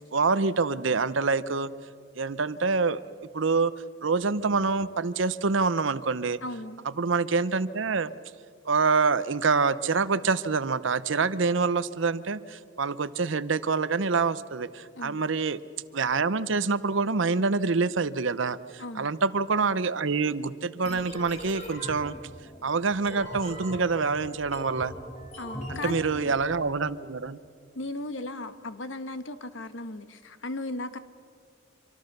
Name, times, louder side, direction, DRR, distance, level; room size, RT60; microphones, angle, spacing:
voice 1, 0.1-1.7 2.1-3.0 3.3-3.7 4.0-6.4 6.8-8.1 8.7-15.6 15.9-22.2 22.6-24.9 25.7-27.4, right 4 dB, 65° right, 15 dB, 0.8 m, -26 dB
voice 2, 6.4-6.8 15.0-15.2 18.8-19.1 25.4-26.3 27.7-31.0, left 2 dB, 65° left, 11 dB, 1.3 m, -36 dB
sound 1, 20.8-26.6, equal, 35° left, 4.0 m, -41 dB
25.5 x 24.5 x 6.7 m, 2.2 s
head